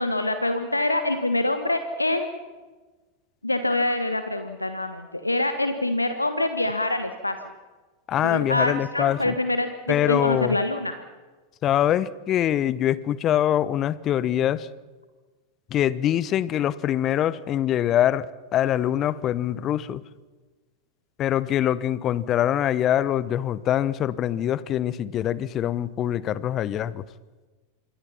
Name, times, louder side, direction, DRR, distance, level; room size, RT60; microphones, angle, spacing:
voice 1, 0.0-2.3 3.4-7.4 8.2-10.9, left 2 dB, 85° left, 8 dB, 1.4 m, -25 dB
voice 2, 8.1-9.3 9.9-10.6 11.6-14.7 15.7-18.3 18.5-20.0 21.2-27.0, left 11 dB, 30° left, 19 dB, 0.8 m, -24 dB
26.5 x 23.0 x 5.8 m, 1.3 s
figure-of-eight pair, 90°, 0 cm